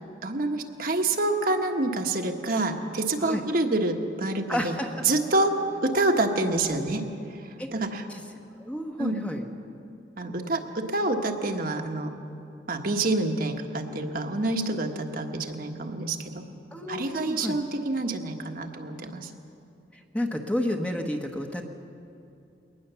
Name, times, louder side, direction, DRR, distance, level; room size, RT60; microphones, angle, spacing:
voice 1, 0.2-4.7 5.0-5.5 5.8-7.0 7.7-8.0 9.0-9.2 10.2-12.2 12.7-16.4 16.9-19.2, right 2 dB, 50° right, 3 dB, 1.4 m, -27 dB
voice 2, 4.5-4.9 7.6-7.7 8.1-8.2 8.6-9.4 16.7-17.6 20.1-21.6, left 1 dB, 5° left, 2 dB, 1.2 m, -30 dB
21.5 x 19.0 x 7.0 m, 2.7 s
head